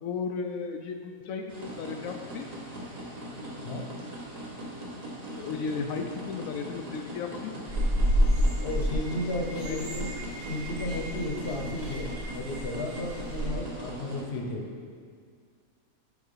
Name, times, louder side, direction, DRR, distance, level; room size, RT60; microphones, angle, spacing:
voice 1, 0.0-2.5 5.3-7.5 9.6-9.9 12.0-12.2 13.9-14.0, left 5 dB, 70° left, 4 dB, 0.9 m, -35 dB
sound 1, 1.5-14.2, equal, 30° right, 1.0 m, -40 dB
sound 2, 7.7-13.5, equal, 70° right, 2.5 m, -29 dB
voice 2, 8.6-10.1 10.4-12.1 12.3-14.6, left 1 dB, 45° left, 1 dB, 1.1 m, -33 dB
8.4 x 4.6 x 5.6 m, 2.2 s
omnidirectional pair, 1.7 m